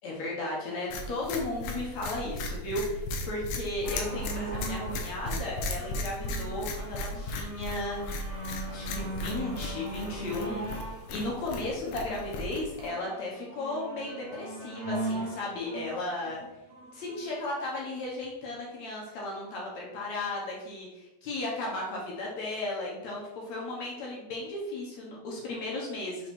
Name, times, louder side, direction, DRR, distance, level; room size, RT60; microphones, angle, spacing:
voice 1, 0.0-8.0 8.7-16.4 16.9-26.3, left 2 dB, 60° left, -3 dB, 2.3 m, -35 dB
sound 1, 0.9-12.9, left 1 dB, 75° left, 2.4 m, -36 dB
sound 2, 3.8-17.4 18.2-18.3, right 2 dB, 60° right, 0.7 m, -40 dB
6.3 x 3.9 x 4.5 m, 0.99 s
omnidirectional pair, 4.1 m